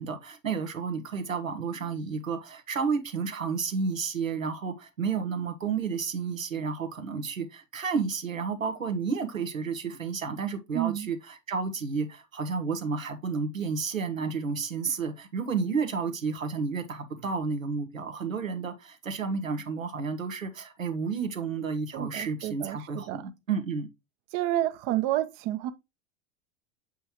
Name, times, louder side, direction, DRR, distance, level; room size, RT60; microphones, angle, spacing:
voice 1, 0.0-23.9, right 5 dB, 85° right, 1.3 m, -31 dB
voice 2, 10.7-11.1 21.9-23.3 24.3-25.7, right 14 dB, 50° right, 0.9 m, -30 dB
7.6 x 5.5 x 3.0 m
figure-of-eight pair, 80°, 39 cm